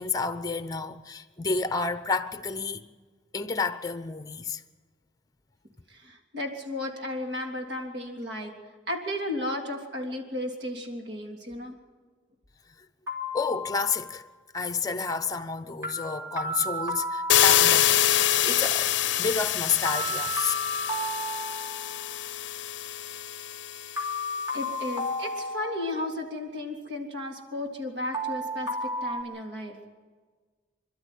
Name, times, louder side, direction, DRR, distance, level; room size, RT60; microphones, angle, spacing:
voice 1, 0.0-2.9 3.3-4.6 13.3-14.3 14.5-18.9 19.2-20.5, left 4 dB, 20° left, 0.8 m, -30 dB
voice 2, 5.9-8.5 8.9-11.8 24.5-29.8, left 1 dB, 60° right, 3.2 m, -34 dB
sound 1, 13.1-14.2 15.8-18.1 19.8-22.2 24.0-26.3 28.1-29.2, equal, 15° right, 3.0 m, -33 dB
sound 2, 17.3-24.1, left 11 dB, 70° left, 0.6 m, -25 dB
27.0 x 12.5 x 9.3 m
head